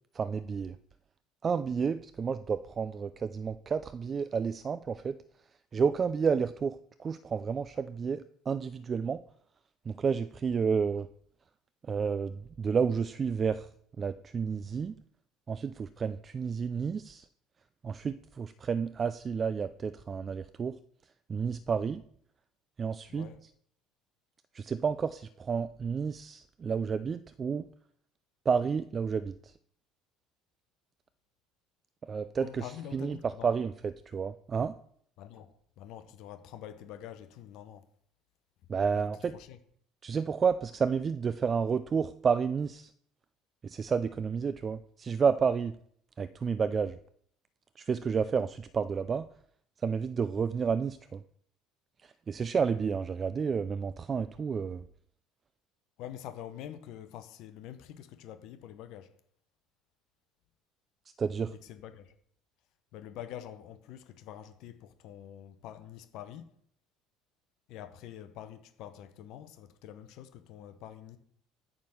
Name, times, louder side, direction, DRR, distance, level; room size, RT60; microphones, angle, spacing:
voice 1, 0.1-0.8 1.4-5.2 5.7-9.2 9.9-11.1 11.9-13.7 14.0-15.0 15.5-17.3 17.8-20.8 21.3-22.0 22.8-23.3 24.5-27.7 28.5-29.5 32.0-34.7 38.7-39.3 40.0-42.9 43.6-45.8 46.2-47.0 47.8-49.3 49.8-51.2 52.0-54.8 61.2-61.5, right 6 dB, 35° right, 0.4 m, -31 dB
voice 2, 23.1-23.4 32.2-33.5 35.2-37.8 38.9-39.0 39.3-39.6 56.0-59.1 61.5-62.1 62.9-66.5 67.7-71.2, left 10 dB, 70° left, 0.7 m, -46 dB
8.9 x 3.7 x 6.4 m
supercardioid pair, 80°, 0 cm